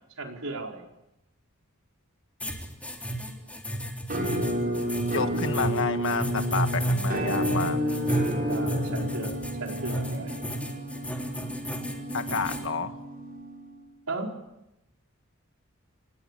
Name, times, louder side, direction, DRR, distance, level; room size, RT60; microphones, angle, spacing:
voice 1, 0.2-0.9 8.5-9.3 9.6-10.4 14.1-14.3, right 3 dB, 75° right, 1 dB, 4.9 m, -35 dB
sound 1, 2.4-12.6, equal, 5° left, 3.6 m, -32 dB
Musical instrument, 4.1-13.9, equal, 45° right, 7.4 m, -31 dB
voice 2, 5.1-7.8 12.1-13.0, left 4 dB, 65° left, 9 dB, 1.7 m, -30 dB
29.0 x 20.0 x 8.5 m, 0.91 s
head